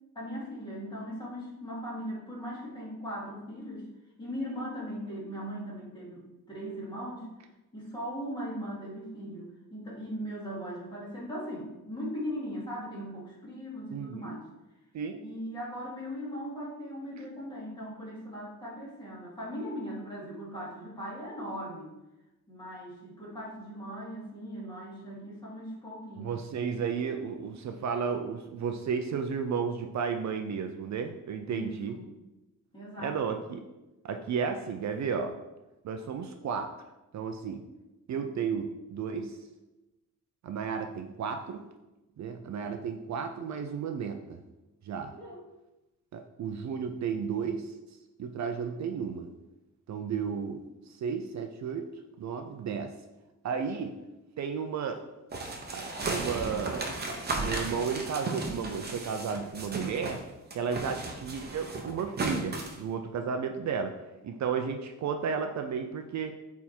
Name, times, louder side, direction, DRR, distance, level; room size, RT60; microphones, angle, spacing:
voice 1, 0.1-3.9 4.2-7.3 7.7-14.4 15.2-21.9 22.5-26.4 31.5-32.0 32.7-33.2 45.1-45.4, equal, 15° left, -7 dB, 2.6 m, -39 dB
voice 2, 13.9-14.4 14.9-15.2 26.2-32.0 33.0-33.6 34.0-35.4 35.8-36.7 37.1-37.6 38.1-39.4 40.4-41.6 42.2-44.4 44.8-45.1 46.1-47.7 48.2-49.3 49.9-50.6 50.9-51.9 52.2-52.9 53.4-53.9 54.4-55.0 55.7-56.9 57.4-60.2 60.5-63.9 64.2-66.3, right 6 dB, 60° right, 6 dB, 0.6 m, -33 dB
sound 1, 55.3-60.2 60.5-62.8, right 2 dB, 30° right, 1.0 m, -35 dB
8.6 x 3.6 x 4.4 m, 1.0 s
wide cardioid pair, 165°, 31 cm